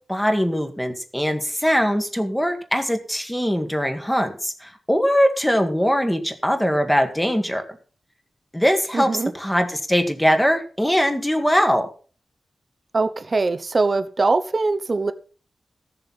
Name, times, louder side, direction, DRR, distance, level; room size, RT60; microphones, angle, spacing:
voice 1, 0.1-7.6 8.5-11.9, equal, 5° left, 5 dB, 1.7 m, -21 dB
voice 2, 8.9-9.3 12.9-15.1, right 3 dB, 40° right, 11 dB, 0.9 m, -22 dB
15.0 x 6.9 x 5.6 m, 0.39 s
wide cardioid pair, 115°, 0 cm